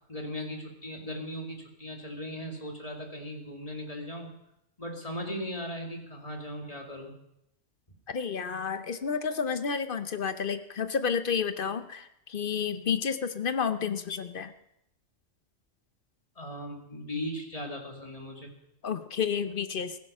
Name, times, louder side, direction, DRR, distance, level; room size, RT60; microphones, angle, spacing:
voice 1, 0.1-4.4 4.8-7.1 16.4-18.5, equal, 30° left, 1 dB, 2.4 m, -38 dB
voice 2, 8.1-14.5 18.8-20.0, left 6 dB, 50° left, 11 dB, 0.9 m, -30 dB
16.0 x 15.0 x 5.5 m, 0.80 s
omnidirectional pair, 1.3 m